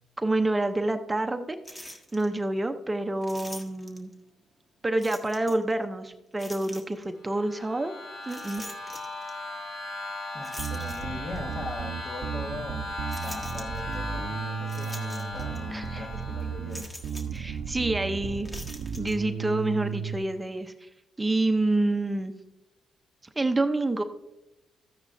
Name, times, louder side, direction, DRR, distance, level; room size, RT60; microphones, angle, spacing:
voice 1, 0.2-4.1 4.8-7.9 8.3-8.6 15.7-16.1 17.3-18.5 19.0-20.9 21.2-22.3 23.4-24.0, right 2 dB, 15° right, 7 dB, 0.7 m, -28 dB
sound 1, 1.6-2.3 3.2-4.1 5.0-5.7 6.4-7.1 8.2-9.3 10.4-11.5 12.1-12.2 13.1-14.0 14.7-15.6 15.9-16.0 16.7-17.4 18.4-19.2, left 1 dB, 15° left, 1.5 m, -43 dB
sound 2, 7.2-16.9, left 2 dB, 80° left, 3.7 m, -38 dB
voice 2, 10.3-16.9, left 2 dB, 50° left, 3 dB, 1.6 m, -40 dB
Bass guitar, 10.6-20.2, right 7 dB, 65° right, 0.6 m, -35 dB
13.5 x 9.5 x 2.6 m, 0.94 s
cardioid pair, 90°, 0 cm